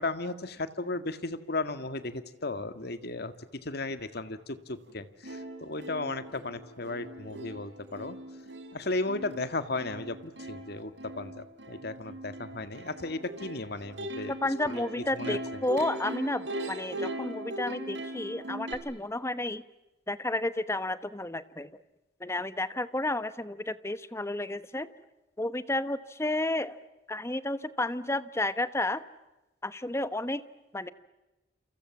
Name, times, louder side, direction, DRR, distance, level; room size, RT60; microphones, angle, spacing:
voice 1, 0.0-8.2 8.7-14.3 15.1-15.4, left 2 dB, 60° left, 11 dB, 1.9 m, -35 dB
Plucked string instrument, 4.9-5.0 5.2-18.7, right 1 dB, 70° right, 4.2 m, -40 dB
voice 2, 14.3-19.6 20.1-21.7 22.2-24.9 25.4-26.8 27.1-29.0 29.6-30.4 30.7-30.9, left 2 dB, 15° left, 14 dB, 1.1 m, -31 dB
29.0 x 28.0 x 7.3 m, 1.0 s
head